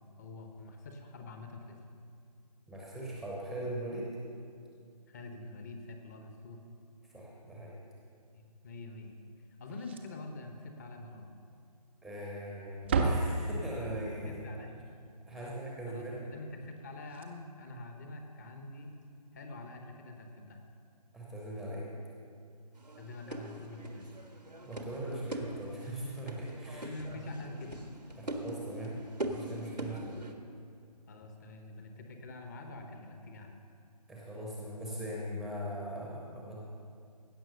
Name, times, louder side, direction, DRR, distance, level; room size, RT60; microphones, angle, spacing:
voice 1, 0.0-1.8 5.1-6.6 8.3-9.1 9.6-11.3 14.2-14.8 15.3-15.5 15.9-18.9 19.3-20.6 23.0-24.1 26.7-27.8 29.9-30.0 31.1-33.6, left 2 dB, 25° left, 4 dB, 1.0 m, -46 dB
voice 2, 2.7-4.1 7.1-7.7 12.0-14.4 15.3-16.3 21.1-21.9 24.6-26.9 27.2-27.3 28.2-28.9 29.2-30.3 34.1-36.6, right 1 dB, ahead, -4 dB, 0.8 m, -40 dB
Slam, 9.7-10.4 10.6-10.8 11.2-11.3 12.1-12.5 12.7-14.0 16.7-16.8 17.0-17.3 18.8-18.9, right 3 dB, 15° right, 0.5 m, -32 dB
sound 1, 22.7-30.3, right 1 dB, 90° right, 1.4 m, -42 dB
16.0 x 6.2 x 6.4 m, 2.3 s
figure-of-eight pair, 145°, 21 cm